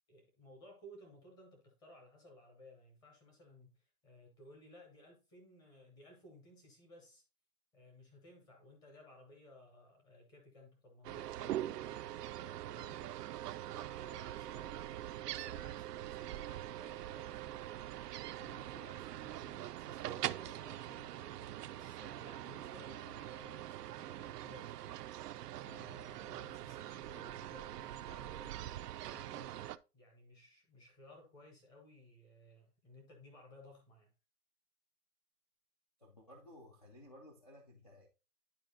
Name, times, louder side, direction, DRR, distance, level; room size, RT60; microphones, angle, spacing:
voice 1, 0.1-7.2 7.7-13.2 13.7-24.7 25.6-34.1, left 1 dB, 10° left, 0.7 m, -58 dB
sound 1, 11.0-29.8, right 13 dB, 75° right, 0.5 m, -43 dB
voice 2, 36.0-38.1, left 1 dB, 25° left, 0.4 m, -57 dB
10.5 x 4.4 x 2.7 m
hypercardioid pair, 160°, 49 cm